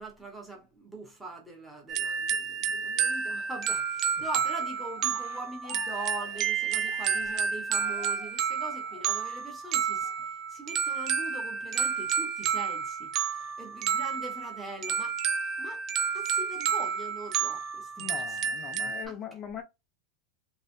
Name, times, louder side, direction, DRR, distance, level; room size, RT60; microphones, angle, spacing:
voice 1, 0.0-10.1 10.5-15.2 15.6-15.8 16.1-18.5 18.8-19.2, right 2 dB, 5° right, 1.2 m, -42 dB
sound 1, 1.9-19.1, right 7 dB, 30° right, 0.5 m, -30 dB
Cheering, 4.2-9.4 9.9-10.3, left 7 dB, 90° left, 1.0 m, -50 dB
voice 2, 18.0-19.6, left 9 dB, 25° left, 0.5 m, -40 dB
3.3 x 3.1 x 2.7 m
supercardioid pair, 165°, 0 cm